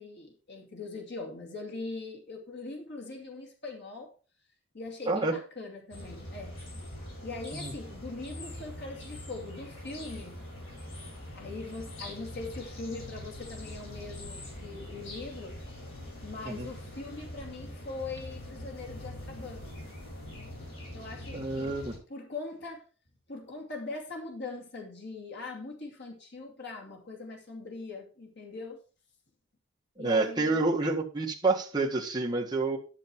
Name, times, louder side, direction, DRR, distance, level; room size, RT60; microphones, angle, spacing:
voice 1, 0.0-4.1 4.7-6.5 6.8-6.9 7.2-10.4 11.3-15.6 16.2-19.6 20.9-21.8 22.1-22.8 23.3-28.8 30.0-30.7, left 3 dB, 60° left, 1 dB, 2.5 m, -41 dB
sound 1, 5.9-22.0, left 1 dB, 80° left, 5.6 m, -43 dB
voice 2, 21.3-21.9 30.0-32.8, right 3 dB, 20° right, -1 dB, 1.8 m, -28 dB
11.5 x 6.5 x 4.5 m, 0.36 s
head